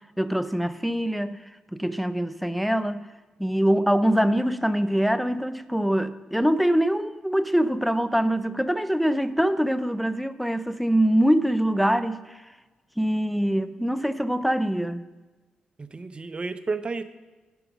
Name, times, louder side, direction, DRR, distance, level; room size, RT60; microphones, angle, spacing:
voice 1, 0.2-1.4 1.7-3.1 3.4-12.4 13.0-15.1, equal, ahead, 0.6 m, -24 dB
voice 2, 15.8-17.0, right 4 dB, 35° right, 0.7 m, -31 dB
10.5 x 5.0 x 6.0 m
cardioid pair, 60°, 3 cm